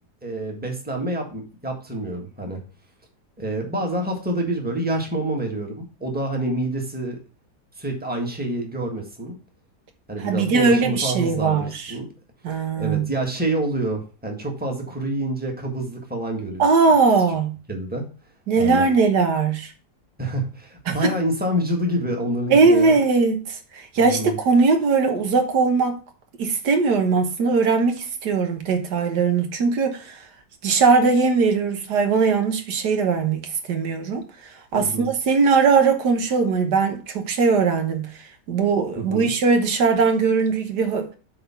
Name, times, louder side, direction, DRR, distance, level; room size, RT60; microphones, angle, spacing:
voice 1, 0.2-2.6 3.4-7.2 7.8-9.4 10.1-12.1 12.8-16.7 17.7-18.1 18.5-18.9 20.2-23.0 24.0-24.4 34.7-35.1 39.0-39.3, right 1 dB, 5° right, 1.6 m, -27 dB
voice 2, 10.2-11.9 12.4-13.1 16.6-17.5 18.5-19.7 20.9-21.1 22.5-26.0 26.4-30.2 30.6-34.2 34.7-38.1 38.5-41.1, right 4 dB, 80° right, 1.7 m, -20 dB
8.5 x 3.8 x 5.8 m
omnidirectional pair, 1.8 m